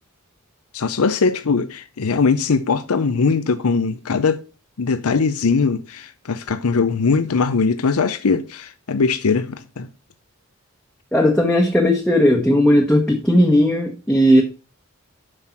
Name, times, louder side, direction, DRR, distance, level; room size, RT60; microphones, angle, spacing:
voice 1, 0.7-4.4 4.8-9.9, left 4 dB, 80° left, 0.6 m, -20 dB
voice 2, 11.1-14.4, equal, 5° left, 1.2 m, -16 dB
7.8 x 5.8 x 5.8 m
head